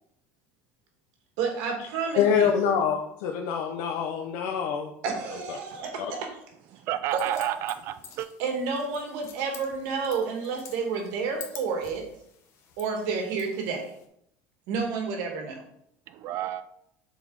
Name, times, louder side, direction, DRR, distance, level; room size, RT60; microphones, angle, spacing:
voice 1, 1.4-2.5 5.0-6.3 7.1-7.2 8.4-12.0 12.8-13.9 14.7-15.6, right 5 dB, 70° right, 3 dB, 1.6 m, -30 dB
voice 2, 2.2-4.9 5.5-5.6 6.0-6.1, left 7 dB, 70° left, 3 dB, 0.7 m, -25 dB
voice 3, 6.9-8.3 16.1-16.6, right 12 dB, 45° right, 11 dB, 0.4 m, -30 dB
sound 1, 7.1-14.1, left 7 dB, 45° left, 1.0 m, -48 dB
7.2 x 4.1 x 3.9 m, 0.74 s
cardioid pair, 155°, 6 cm